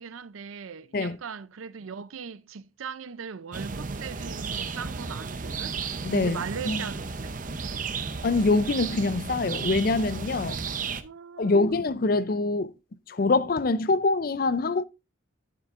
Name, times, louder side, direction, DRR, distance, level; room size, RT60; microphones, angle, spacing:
voice 1, 0.0-5.8 6.1-7.3 11.0-11.8, right 6 dB, 85° right, 0.5 m, -39 dB
sound 1, 3.5-11.0, right 5 dB, 40° right, 0.7 m, -34 dB
voice 2, 6.0-6.9 8.2-10.6 11.4-12.7 13.1-14.8, left 3 dB, 45° left, 0.5 m, -24 dB
12.0 x 7.6 x 2.5 m
head